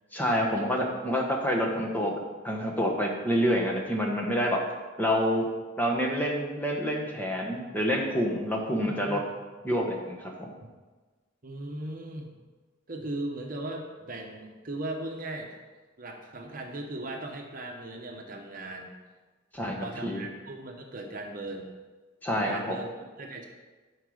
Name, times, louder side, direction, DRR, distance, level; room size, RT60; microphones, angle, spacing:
voice 1, 0.1-2.2 2.4-4.6 5.0-5.4 5.8-9.2 9.6-10.5 19.5-20.3 22.2-22.8, equal, 10° left, -1 dB, 1.2 m, -27 dB
voice 2, 8.8-9.3 11.4-12.3 12.9-15.5 16.0-18.9 19.8-21.7 22.3-23.5, right 2 dB, 45° right, 2 dB, 1.0 m, -38 dB
12.0 x 4.8 x 5.0 m, 1.3 s
head